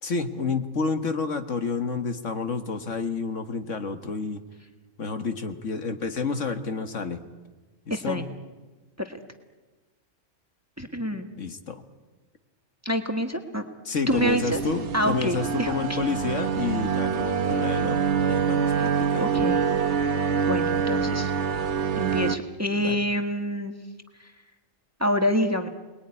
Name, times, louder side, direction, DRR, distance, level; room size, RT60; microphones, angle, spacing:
voice 1, 0.0-4.4 5.0-7.2 7.9-8.3 11.1-11.8 13.9-19.3 22.8-23.0, left 4 dB, 65° left, 7 dB, 1.8 m, -30 dB
voice 2, 7.9-8.2 9.0-9.2 10.8-11.3 12.8-13.6 14.1-14.6 14.9-15.7 18.8-18.9 19.2-19.6 20.5-21.3 22.0-23.8 25.0-25.7, equal, 10° right, 5 dB, 1.5 m, -27 dB
sound 1, 14.1-22.4, right 6 dB, 60° right, 1.3 m, -25 dB
28.5 x 20.5 x 9.8 m, 1.3 s
omnidirectional pair, 1.4 m